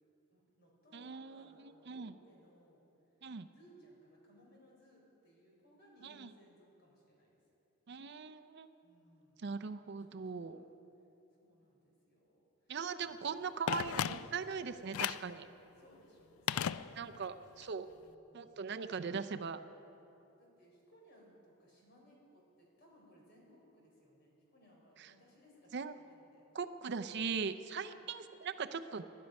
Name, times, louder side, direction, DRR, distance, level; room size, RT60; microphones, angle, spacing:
voice 1, 0.3-2.8 3.5-7.4 8.8-9.4 9.9-10.7 11.4-12.8 13.0-13.1 15.8-17.4 17.9-18.5 20.4-26.4 27.8-28.0, equal, 50° left, -2 dB, 4.2 m, -64 dB
voice 2, 0.9-2.1 3.2-3.5 6.0-6.3 7.9-8.7 9.4-10.6 12.7-15.5 17.0-17.9 18.3-19.6 25.0-25.1 25.7-25.9 26.5-29.0, right 5 dB, 55° right, 9 dB, 0.5 m, -40 dB
Telephone, 13.7-14.5 14.9-15.3 16.5-17.3 17.6-17.7, left 9 dB, 80° left, 0.3 m, -36 dB
20.0 x 11.5 x 5.3 m, 2.9 s
head